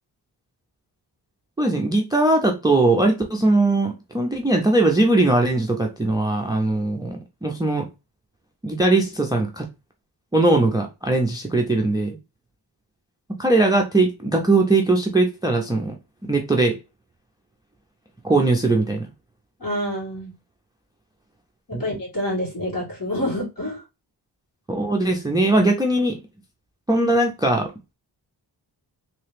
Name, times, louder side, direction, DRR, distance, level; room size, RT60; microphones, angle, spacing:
voice 1, 1.6-7.9 8.6-9.7 10.3-12.2 13.4-16.0 16.3-16.8 18.2-19.1 21.7-21.9 24.7-26.2 26.9-27.7, right 2 dB, 10° right, 0.3 m, -20 dB
voice 2, 19.6-20.3 21.7-23.8, left 1 dB, 50° left, 2.1 m, -27 dB
3.2 x 2.8 x 3.2 m
wide cardioid pair, 170°, 42 cm